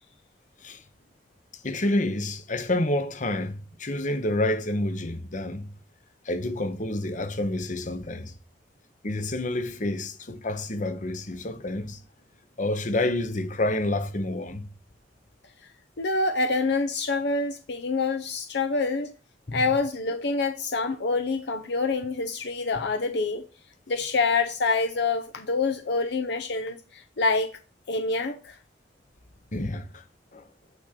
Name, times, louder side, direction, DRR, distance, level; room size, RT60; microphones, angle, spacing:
voice 1, 1.6-5.7 6.3-8.3 9.0-12.0 12.6-14.7 19.5-19.6 29.5-30.0 30.3-30.4, left 1 dB, 45° left, 1.0 m, -28 dB
voice 2, 16.0-19.1 19.5-23.5 23.9-27.5 27.9-28.6, left 3 dB, 70° left, 0.7 m, -26 dB
9.2 x 3.7 x 5.9 m
head